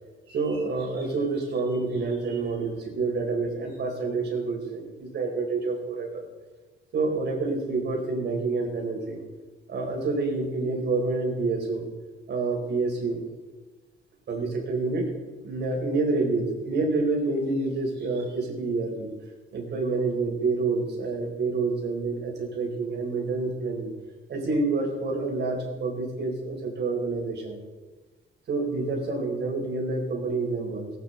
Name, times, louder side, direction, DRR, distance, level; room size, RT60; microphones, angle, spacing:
voice 1, 0.3-6.2 6.9-9.2 9.7-11.8 12.3-13.2 14.3-15.1 15.4-19.1 19.5-23.9 24.3-27.6 28.5-30.9, right 3 dB, 60° right, 0 dB, 4.2 m, -28 dB
17.5 x 9.1 x 4.4 m, 1.3 s
cardioid pair, 90°, 20 cm